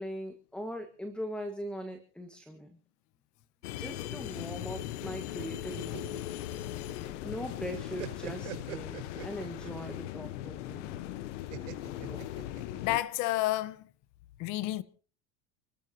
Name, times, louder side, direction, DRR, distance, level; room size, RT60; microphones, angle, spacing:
voice 1, 0.0-2.8 3.8-6.3 7.2-10.9 11.9-12.2, equal, 5° left, 1.7 m, -41 dB
sound 1, 3.6-13.0, left 13 dB, 80° left, 1.2 m, -39 dB
sound 2, 5.6-7.3 7.6-9.9 11.5-13.0, right 14 dB, 90° right, 5.6 m, -44 dB
voice 2, 12.8-13.8 14.4-14.8, left 16 dB, 55° left, 1.2 m, -30 dB
29.5 x 14.0 x 2.9 m
supercardioid pair, 135°, 36 cm